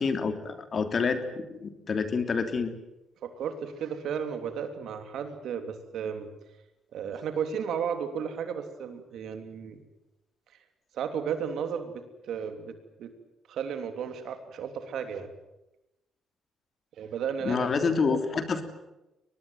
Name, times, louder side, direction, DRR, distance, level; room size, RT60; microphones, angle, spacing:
voice 1, 0.0-2.7 17.4-18.6, left 5 dB, 45° left, 8 dB, 3.1 m, -28 dB
voice 2, 3.2-6.3 6.9-9.8 10.9-13.1 13.5-15.3 17.0-17.7 18.0-18.2, right 7 dB, 75° right, 8 dB, 3.1 m, -34 dB
23.0 x 20.5 x 9.3 m, 0.95 s
cardioid pair, 90°, 0 cm